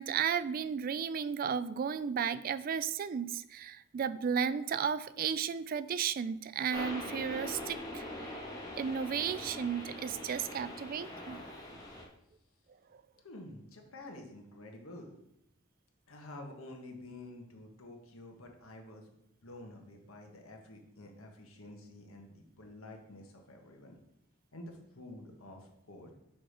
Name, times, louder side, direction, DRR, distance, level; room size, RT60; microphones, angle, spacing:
voice 1, 0.0-8.4 8.8-11.4, right 7 dB, 45° right, 14 dB, 0.3 m, -34 dB
sound 1, 6.7-12.0, left 1 dB, 20° left, 1.8 m, -43 dB
voice 2, 13.2-15.2 16.1-19.1 19.4-23.9 24.5-26.1, left 1 dB, 90° left, 2 dB, 1.4 m, -49 dB
6.1 x 4.9 x 5.1 m, 0.80 s
head